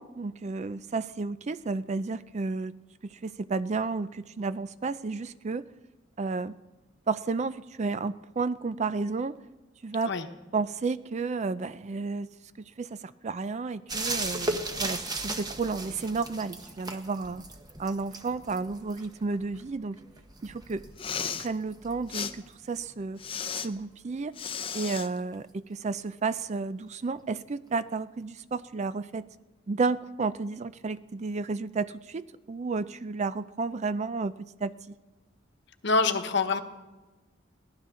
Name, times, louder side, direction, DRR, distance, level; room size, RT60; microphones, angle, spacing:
voice 1, 0.0-2.7 3.0-5.7 6.2-6.6 7.1-9.4 9.8-10.1 10.5-12.3 12.6-17.4 17.8-20.0 20.4-20.8 21.4-23.2 23.5-24.3 24.7-29.3 29.7-34.3 34.6-34.9, right 4 dB, 35° right, 15 dB, 0.4 m, -32 dB
sound 1, 13.9-23.3 25.3-25.4, right 2 dB, 20° right, 1.1 m, -37 dB
Respiratory sounds, 20.9-21.5 22.1-22.3 23.2-23.7 24.3-25.1, left 7 dB, 30° left, 0.6 m, -34 dB
voice 2, 35.8-36.6, left 4 dB, 65° left, 8 dB, 1.1 m, -25 dB
22.0 x 16.0 x 3.7 m, 1.2 s
head